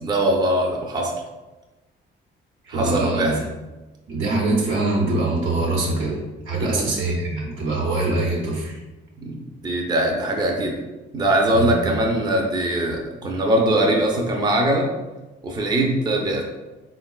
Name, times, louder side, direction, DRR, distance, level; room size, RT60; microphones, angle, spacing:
voice 1, 0.0-1.1 2.7-3.4 6.6-6.9 9.2-10.8 11.1-14.9 15.4-16.4, right 1 dB, 20° right, 0 dB, 0.5 m, -21 dB
voice 2, 2.7-3.4 4.1-6.2 6.5-8.8 11.5-12.0, right 2 dB, 80° right, -3 dB, 0.9 m, -23 dB
3.6 x 2.2 x 2.3 m, 1.1 s
cardioid pair, 90°, 20 cm